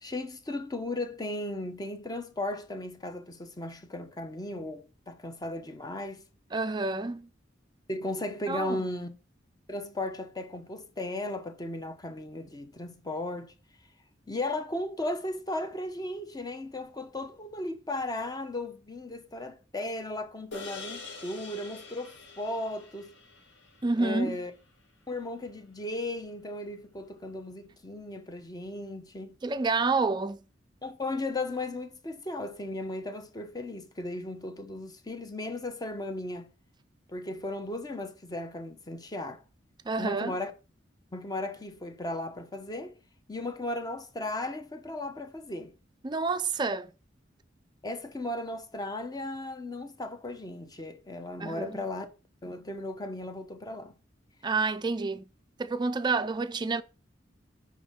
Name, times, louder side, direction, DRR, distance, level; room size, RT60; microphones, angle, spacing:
voice 1, 0.0-6.2 7.9-9.1 9.7-13.5 14.3-23.2 24.0-24.5 25.1-29.4 30.8-36.5 37.1-39.4 40.0-40.5 41.1-42.9 43.3-45.7 47.8-52.1 52.4-53.9, left 2 dB, 20° left, 0.8 m, -36 dB
voice 2, 6.5-7.3 8.5-8.8 23.8-24.4 29.4-30.4 39.9-40.4 46.0-46.9 51.4-51.8 54.4-55.2 55.6-56.8, right 3 dB, 25° right, 0.4 m, -28 dB
sound 1, 20.5-25.1, left 4 dB, 80° left, 1.8 m, -46 dB
9.4 x 3.6 x 3.6 m
head